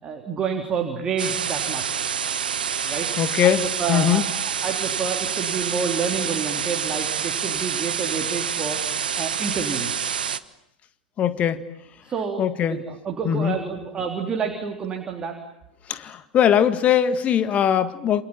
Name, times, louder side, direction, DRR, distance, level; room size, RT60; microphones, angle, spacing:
voice 1, 0.0-2.0 2.9-3.1 3.4-4.2 4.6-8.8 9.2-10.0 12.0-12.4 12.7-15.3, right 6 dB, 20° right, 2 dB, 3.6 m, -29 dB
sound 1, 1.2-10.4, right 7 dB, 65° right, 1.2 m, -27 dB
voice 2, 3.2-4.3 11.2-11.6 12.4-12.8 13.2-13.6 15.9-18.2, left 9 dB, 25° left, 11 dB, 1.9 m, -21 dB
28.5 x 27.0 x 7.4 m, 0.82 s
figure-of-eight pair, 100°, 5 cm